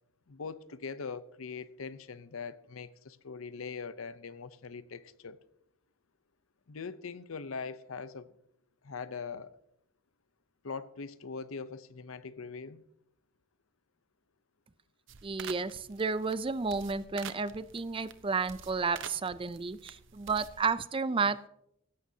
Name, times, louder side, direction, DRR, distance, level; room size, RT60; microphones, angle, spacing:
voice 1, 0.3-5.4 6.7-8.3 8.8-9.6 10.6-12.9, left 5 dB, 75° left, 0.7 m, -41 dB
sound 1, 15.1-20.7, right 7 dB, 60° right, 0.8 m, -48 dB
voice 2, 15.2-21.5, right 4 dB, 25° right, 0.4 m, -32 dB
16.5 x 14.0 x 2.8 m
head